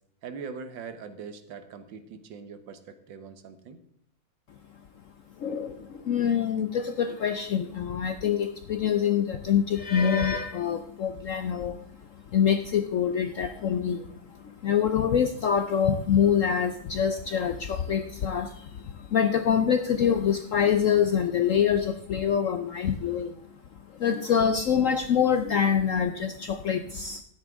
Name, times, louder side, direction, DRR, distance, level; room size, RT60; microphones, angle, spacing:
voice 1, 0.2-3.8, right 5 dB, 75° right, 10 dB, 1.7 m, -41 dB
voice 2, 5.4-23.4 23.9-27.2, left 8 dB, 70° left, 9 dB, 0.7 m, -25 dB
13.0 x 9.5 x 3.6 m, 0.69 s
omnidirectional pair, 2.1 m